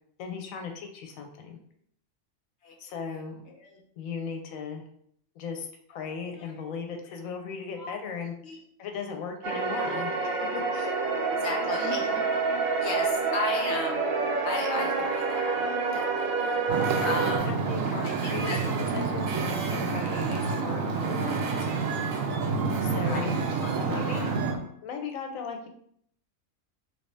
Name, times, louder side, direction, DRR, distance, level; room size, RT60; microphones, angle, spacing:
voice 1, 0.2-1.6 2.8-3.4 4.0-4.8 5.3-8.4 8.8-11.0 17.4-21.7 22.8-23.4 23.8-24.3 24.8-25.7, left 5 dB, 90° left, 4 dB, 1.0 m, -37 dB
voice 2, 6.0-6.5 7.8-7.9 8.4-8.6 11.4-12.2 12.8-14.1 14.4-16.6 17.0-17.6 18.0-18.6 22.9-24.3, left 3 dB, 60° left, 0 dB, 1.0 m, -35 dB
sound 1, 9.4-17.4, right 4 dB, 55° right, 0.6 m, -28 dB
Wind / Ocean, 16.7-24.6, right 4 dB, 80° right, 1.0 m, -28 dB
3.1 x 2.7 x 3.2 m, 0.68 s
omnidirectional pair, 1.4 m